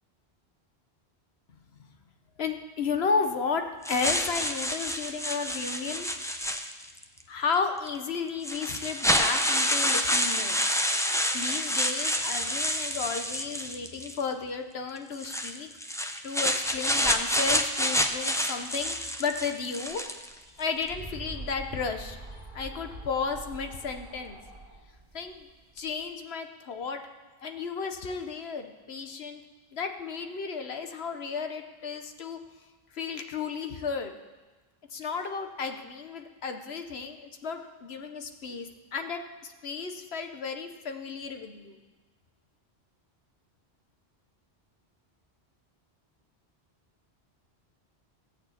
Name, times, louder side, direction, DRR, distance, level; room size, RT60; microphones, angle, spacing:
voice 1, 2.4-6.1 7.3-10.6 11.3-15.7 16.2-20.0 20.6-22.2 22.5-24.4 25.1-25.5 25.8-27.0 27.4-29.4 29.7-32.4 32.9-34.1 34.9-41.8, left 5 dB, 75° left, 6 dB, 1.2 m, -33 dB
sound 1, 3.8-7.0 7.9-8.0 8.4-14.2 15.1-20.3, equal, 5° left, 0.6 m, -28 dB
sound 2, 20.4-26.0, right 2 dB, 55° right, 1.7 m, -44 dB
15.0 x 6.6 x 8.4 m, 1.2 s
omnidirectional pair, 1.1 m